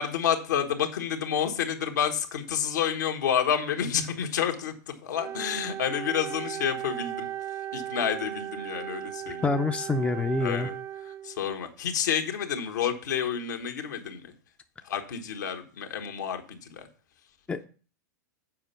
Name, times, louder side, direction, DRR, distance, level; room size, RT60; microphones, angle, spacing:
voice 1, 0.0-7.3 7.7-9.5 10.4-10.7 11.2-14.2 14.8-16.9, left 8 dB, 70° left, 4 dB, 1.5 m, -29 dB
Wind instrument woodwind instrument, 5.2-11.5, right 11 dB, 30° right, 0.5 m, -37 dB
voice 2, 9.4-10.7 17.5-17.7, left 3 dB, 10° left, 6 dB, 0.6 m, -26 dB
7.5 x 5.1 x 5.6 m, 0.38 s
hypercardioid pair, 100°, 10 cm